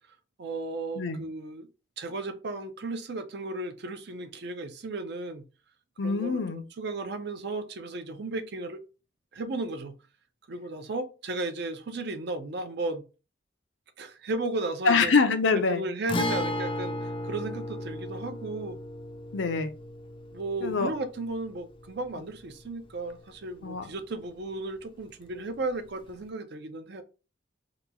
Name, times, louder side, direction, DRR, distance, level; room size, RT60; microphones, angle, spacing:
voice 1, 0.4-1.7 2.0-5.4 6.0-8.8 9.3-9.9 10.5-13.0 14.0-15.1 15.5-18.8 20.3-27.0, right 2 dB, 65° right, 0.5 m, -35 dB
voice 2, 6.0-6.6 14.8-15.8 19.3-19.7 20.6-20.9 23.6-23.9, left 4 dB, 85° left, 0.5 m, -25 dB
Guitar, 16.1-23.7 24.0-24.1 26.1-26.2, left 1 dB, 30° left, 0.4 m, -35 dB
3.0 x 2.3 x 3.7 m
head